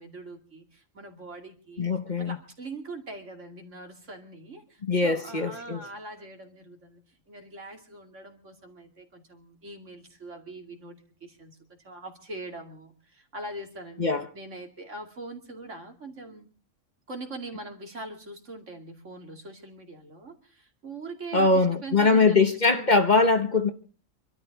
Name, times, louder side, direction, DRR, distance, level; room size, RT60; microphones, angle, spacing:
voice 1, 0.0-1.9 2.2-14.1 14.3-16.5 17.1-22.4 22.7-23.3, right 2 dB, 65° right, 2.8 m, -42 dB
voice 2, 1.8-2.4 4.8-5.8 14.0-14.3 21.3-23.7, left 3 dB, 35° left, 1.2 m, -22 dB
26.0 x 12.5 x 4.0 m
omnidirectional pair, 1.3 m